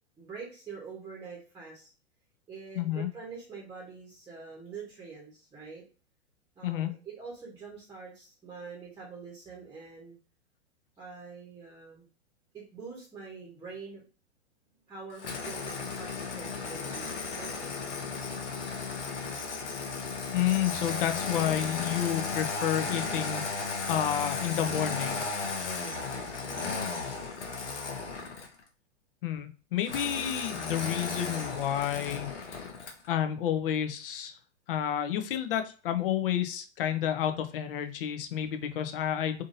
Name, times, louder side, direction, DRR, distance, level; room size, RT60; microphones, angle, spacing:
voice 1, 0.2-1.9 2.5-5.8 6.6-10.1 11.0-12.1 12.5-14.0 14.9-17.8 25.7-26.7, right 5 dB, 10° right, -2 dB, 0.9 m, -45 dB
voice 2, 2.8-3.1 6.6-6.9 20.3-25.2 29.2-32.3 33.1-34.4 34.7-39.4, left 10 dB, 50° left, 8 dB, 0.6 m, -30 dB
Engine starting, 15.2-28.6 29.8-33.1, left 4 dB, 75° left, 0.9 m, -35 dB
3.7 x 2.7 x 2.6 m, 0.36 s
figure-of-eight pair, 105°, 35 cm